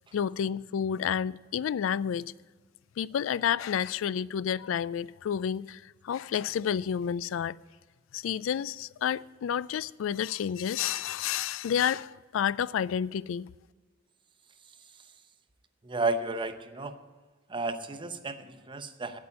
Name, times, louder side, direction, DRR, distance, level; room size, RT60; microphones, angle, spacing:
voice 1, 0.1-2.3 3.0-7.6 8.1-13.5, left 8 dB, 90° left, 0.3 m, -30 dB
voice 2, 15.8-17.0 17.5-19.2, right 3 dB, 25° right, 0.7 m, -32 dB
8.7 x 8.3 x 8.7 m
head